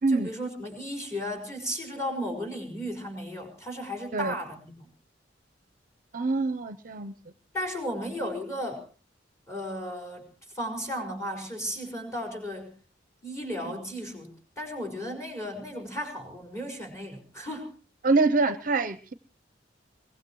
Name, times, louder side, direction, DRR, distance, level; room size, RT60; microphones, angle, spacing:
voice 1, 0.1-4.9 7.5-8.8 9.5-10.3 10.5-12.7 13.2-17.7, equal, 15° left, 3 dB, 5.5 m, -35 dB
voice 2, 6.1-7.1 18.0-19.1, right 3 dB, 45° right, 13 dB, 0.7 m, -25 dB
23.0 x 19.5 x 3.1 m, 0.37 s
head